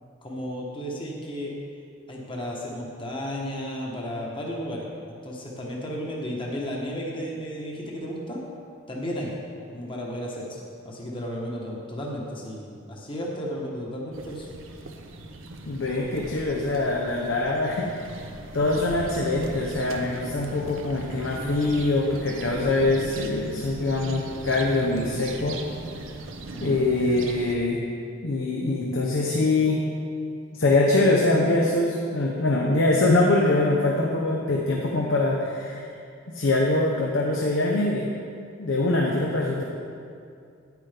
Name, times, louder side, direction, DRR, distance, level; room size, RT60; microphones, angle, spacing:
voice 1, 0.2-1.5 2.1-4.9 5.2-8.4 8.9-9.3 9.7-14.5 26.5-26.8, equal, 25° left, -3 dB, 1.2 m, -33 dB
sound 1, 14.1-27.6, right 2 dB, 90° right, 0.7 m, -38 dB
voice 2, 15.7-18.2 18.5-25.6 26.6-27.8 28.2-29.8 30.5-35.9 36.3-38.1 38.6-39.6, left 2 dB, 85° left, -2 dB, 0.8 m, -23 dB
9.4 x 9.3 x 3.5 m, 2.4 s
head